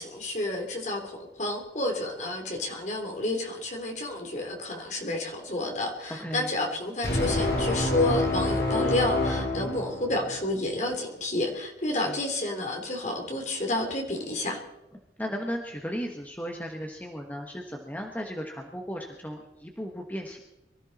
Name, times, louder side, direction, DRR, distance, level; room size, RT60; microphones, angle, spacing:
voice 1, 0.0-14.6, left 2 dB, 40° left, 2 dB, 3.2 m, -30 dB
sound 1, 7.0-10.5, left 2 dB, 60° left, 2.8 m, -27 dB
voice 2, 15.2-20.4, equal, 10° left, 2 dB, 1.2 m, -35 dB
23.5 x 14.0 x 4.1 m, 0.93 s
head